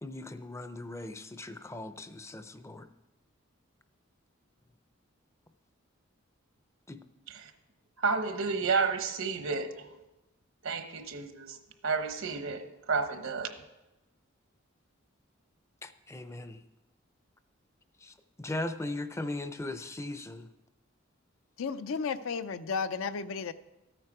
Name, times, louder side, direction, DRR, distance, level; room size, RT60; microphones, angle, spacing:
voice 1, 0.0-2.9 6.9-7.0 15.8-16.6 18.0-20.5, left 2 dB, 15° left, 10 dB, 0.5 m, -39 dB
voice 2, 8.0-9.9 10.6-11.6 11.8-13.6, right 4 dB, 75° right, 8 dB, 1.0 m, -31 dB
voice 3, 21.6-23.5, left 5 dB, 75° left, 12 dB, 0.5 m, -33 dB
13.5 x 9.0 x 4.9 m, 1.0 s
head